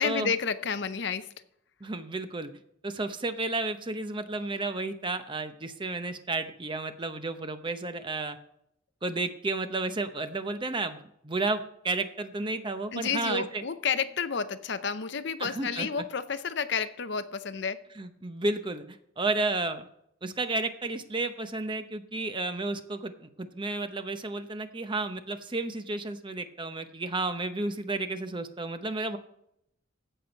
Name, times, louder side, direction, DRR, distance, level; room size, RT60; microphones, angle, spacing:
voice 1, 0.0-1.3 12.9-17.9, left 6 dB, 60° left, 0.7 m, -30 dB
voice 2, 1.8-2.5 2.8-8.4 9.0-13.6 15.4-15.9 18.0-19.9 20.2-29.2, right 2 dB, 25° right, 0.7 m, -32 dB
15.5 x 6.1 x 5.2 m
head